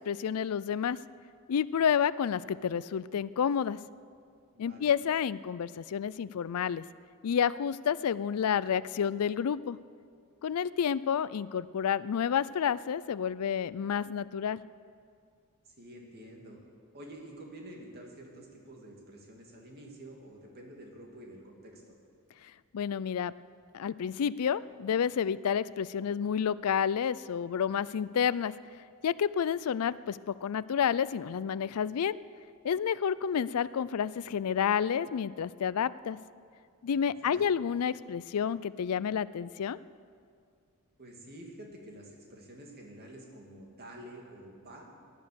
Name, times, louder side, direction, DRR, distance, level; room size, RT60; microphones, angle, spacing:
voice 1, 0.1-1.0 1.5-3.8 4.6-6.8 7.2-9.8 10.4-14.6 22.7-23.3 23.7-28.5 29.0-32.2 32.6-36.2 36.8-39.8, left 7 dB, 80° left, 18 dB, 0.4 m, -30 dB
voice 2, 4.5-4.9 15.6-16.6 16.9-21.9 36.9-37.4 41.0-44.9, right 1 dB, 45° right, 0 dB, 2.7 m, -49 dB
18.0 x 11.0 x 6.8 m, 2.2 s
head